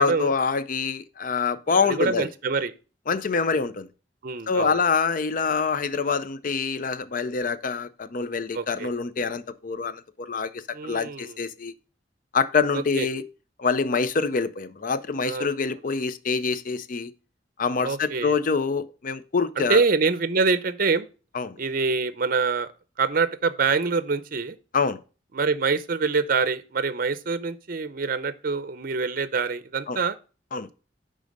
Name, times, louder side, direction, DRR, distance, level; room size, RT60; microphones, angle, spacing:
voice 1, 0.0-2.3 3.1-3.9 4.5-11.7 12.3-13.2 13.6-17.1 17.6-19.8 21.3-21.6 24.7-25.0 29.9-30.0 30.5-30.7, left 5 dB, 50° left, 0.5 m, -25 dB
voice 2, 1.8-2.7 4.2-4.9 8.5-8.9 10.7-11.4 12.7-13.1 15.2-15.5 17.8-18.4 19.6-21.1 21.6-22.7 23.0-24.6 25.3-30.2, right 4 dB, 55° right, 0.6 m, -25 dB
10.5 x 3.8 x 5.2 m
head